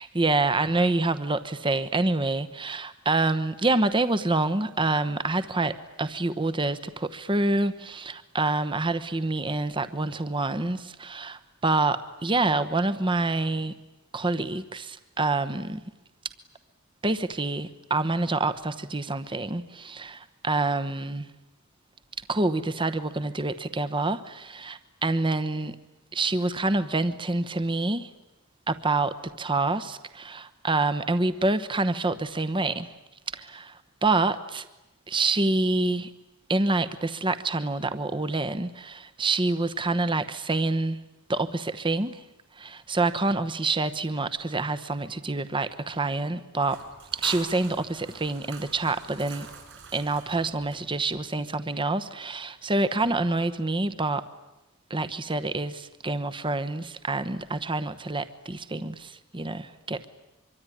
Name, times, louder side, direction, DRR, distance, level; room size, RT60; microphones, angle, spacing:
voice 1, 0.0-13.7 14.1-15.8 17.0-21.3 22.2-25.8 26.1-28.1 28.7-32.9 33.3-34.7 35.1-36.1 36.5-41.0 41.3-42.2 42.5-46.8 47.1-49.5 49.9-54.2 54.9-60.1, right 2 dB, 20° right, 1.0 m, -27 dB
sound 1, 46.6-51.2, right 6 dB, 55° right, 6.2 m, -44 dB
24.5 x 24.5 x 9.9 m
head